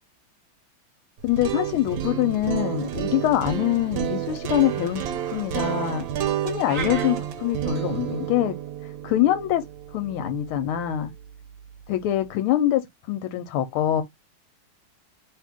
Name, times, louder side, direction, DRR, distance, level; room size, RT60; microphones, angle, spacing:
voice 1, 1.2-6.0 6.4-8.6 9.0-9.6 9.9-11.1 11.9-12.8 13.1-14.0, left 12 dB, 85° left, 1.5 m, -24 dB
sound 1, 1.2-11.2, right 10 dB, 70° right, 1.2 m, -30 dB
sound 2, 6.6-7.1, right 5 dB, 55° right, 1.0 m, -32 dB
3.2 x 2.8 x 3.5 m
omnidirectional pair, 2.4 m